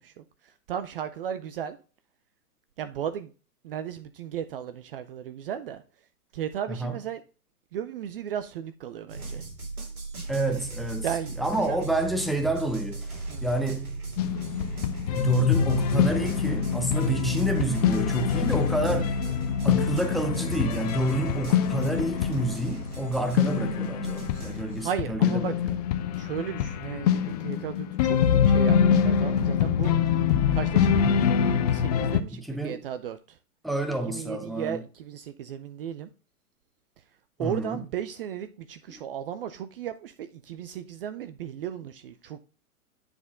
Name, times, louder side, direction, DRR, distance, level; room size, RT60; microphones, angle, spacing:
voice 1, 0.0-1.8 2.8-3.3 3.6-5.8 6.3-7.2 7.7-9.4 11.0-11.8 13.3-13.4 24.4-25.5 26.2-29.9 30.5-33.4 34.1-36.1 37.4-42.4, right 9 dB, 40° right, 0.5 m, -35 dB
sound 1, 9.1-24.8, right 3 dB, 75° right, 3.4 m, -37 dB
voice 2, 10.3-11.1 11.4-13.1 13.4-13.9 15.1-19.2 19.6-25.7 30.9-31.2 32.4-32.8 33.6-34.8 37.4-37.8, right 1 dB, ahead, 0.8 m, -29 dB
sound 2, 14.2-32.2, left 8 dB, 30° left, 0.5 m, -25 dB
9.7 x 4.2 x 3.5 m
figure-of-eight pair, 110°, 44 cm